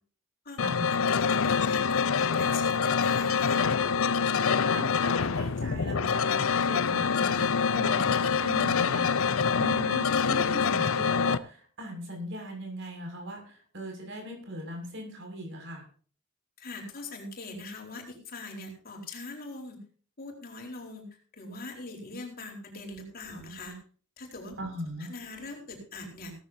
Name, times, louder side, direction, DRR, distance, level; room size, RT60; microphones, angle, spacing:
sound 1, 0.6-11.4, left 6 dB, 75° left, 0.6 m, -26 dB
voice 1, 0.6-1.0 4.4-15.9 24.6-25.1, equal, 60° right, 2 dB, 6.6 m, -40 dB
voice 2, 1.1-3.6 16.6-19.8 20.2-23.8 24.2-24.6 25.0-26.3, left 2 dB, 45° left, 1 dB, 4.4 m, -42 dB
17.0 x 14.0 x 2.8 m, 0.43 s
head